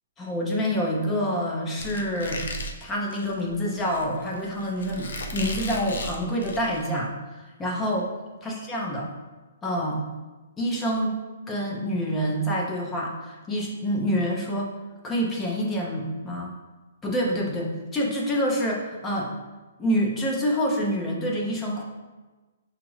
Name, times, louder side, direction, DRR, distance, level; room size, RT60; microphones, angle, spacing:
voice 1, 0.2-2.4 2.8-8.1 8.4-9.1 9.6-10.0 10.6-11.2 11.5-14.7 15.0-16.5 17.0-19.3 19.8-21.8, equal, 10° left, -2 dB, 0.6 m, -27 dB
Squeak, 1.8-6.9, equal, 70° left, 0.5 m, -36 dB
5.9 x 2.4 x 3.1 m, 1.2 s
hypercardioid pair, 165°, 0 cm